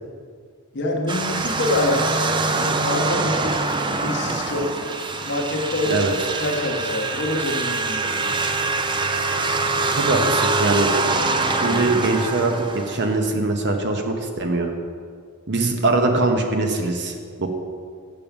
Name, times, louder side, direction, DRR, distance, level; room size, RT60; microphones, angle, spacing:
voice 1, 0.7-3.6 4.0-4.7 5.2-6.0 6.4-8.6, left 1 dB, 55° left, 1 dB, 1.1 m, -26 dB
sound 1, 1.1-13.2, right 3 dB, 20° right, 0.4 m, -24 dB
voice 2, 9.9-10.9 11.5-14.7 15.5-17.5, right 2 dB, 50° right, 4 dB, 0.9 m, -22 dB
7.1 x 6.8 x 5.9 m, 2.1 s
head